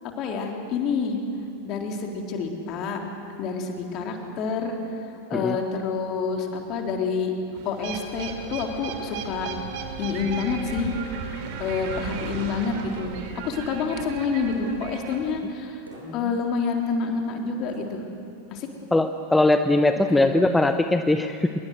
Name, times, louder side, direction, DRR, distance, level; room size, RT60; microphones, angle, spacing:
voice 1, 0.2-1.2 1.6-3.0 3.4-4.8 5.3-7.3 7.7-9.5 10.0-10.9 11.6-13.2 13.4-15.8 16.1-18.0 18.5-18.7 20.1-20.6, left 5 dB, 35° left, 2 dB, 3.7 m, -28 dB
sound 1, 7.5-15.4, right 7 dB, 45° right, 2.8 m, -36 dB
Bowed string instrument, 8.9-13.3, right 2 dB, 70° left, 5.1 m, -43 dB
sound 2, 13.9-14.5 15.9-16.5 17.7-18.3, right 2 dB, 80° right, 7.8 m, -47 dB
voice 2, 18.9-21.5, left 2 dB, 5° left, 8 dB, 0.8 m, -20 dB
26.0 x 23.0 x 8.0 m, 2.8 s
figure-of-eight pair, 90°, 0 cm